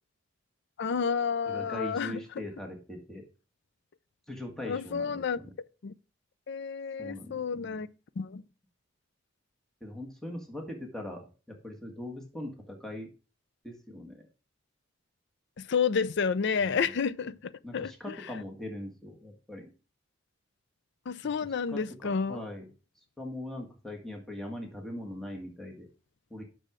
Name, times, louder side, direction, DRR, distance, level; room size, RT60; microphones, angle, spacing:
voice 1, 0.8-2.4 4.7-5.4 5.8-5.9 6.5-7.9 8.2-8.4 15.6-18.1 21.1-22.4, left 6 dB, 60° left, 0.5 m, -30 dB
voice 2, 1.5-3.2 4.3-5.5 7.0-7.8 9.8-11.2 11.6-13.1 13.6-14.3 16.6-16.8 17.6-19.7 21.2-21.3 21.7-22.7 23.2-25.9 26.3-26.4, left 1 dB, 5° left, 1.6 m, -41 dB
8.8 x 6.2 x 4.8 m
head